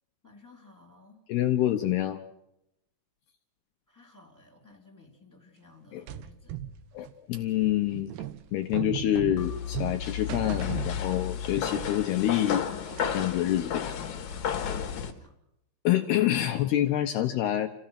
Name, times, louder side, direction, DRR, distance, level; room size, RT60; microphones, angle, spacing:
voice 1, 0.2-1.2 3.9-6.6 13.9-15.3, left 3 dB, 5° left, 2 dB, 2.9 m, -56 dB
voice 2, 1.3-2.2 5.9-6.0 6.9-8.1 8.5-12.6 13.1-14.0 15.8-17.7, left 12 dB, 75° left, 5 dB, 2.4 m, -27 dB
sound 1, 6.1-11.5 11.8-13.3, right 11 dB, 75° right, 2.5 m, -38 dB
sound 2, 9.4-15.1, left 8 dB, 55° left, 2.3 m, -33 dB
29.0 x 16.5 x 5.9 m, 0.80 s
omnidirectional pair, 5.7 m